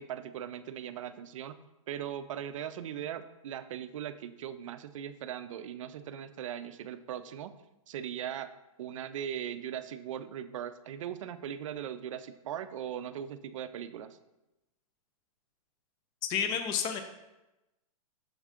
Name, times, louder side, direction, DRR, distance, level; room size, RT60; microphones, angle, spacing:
voice 1, 0.0-1.5 1.9-7.5 7.9-8.5 8.8-14.2, right 9 dB, 60° right, 11 dB, 0.5 m, -39 dB
voice 2, 16.3-17.0, left 7 dB, 20° left, 7 dB, 0.5 m, -30 dB
6.5 x 4.8 x 3.6 m, 0.97 s
hypercardioid pair, 150°, 19 cm